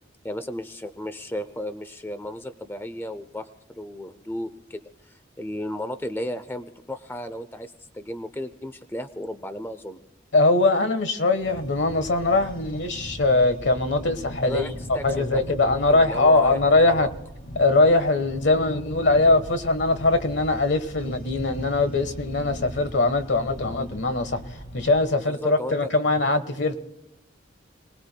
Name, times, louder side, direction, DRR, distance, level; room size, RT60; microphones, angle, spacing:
voice 1, 0.2-3.5 3.7-10.0 14.4-16.6 17.0-17.1 25.1-25.9, equal, 10° left, 0.6 m, -34 dB
voice 2, 10.3-14.7 15.0-17.1 17.5-24.4 24.7-26.8, left 2 dB, 65° left, 1.3 m, -21 dB
sound 1, 11.4-25.0, equal, 45° left, 4.0 m, -40 dB
30.0 x 19.5 x 2.3 m
head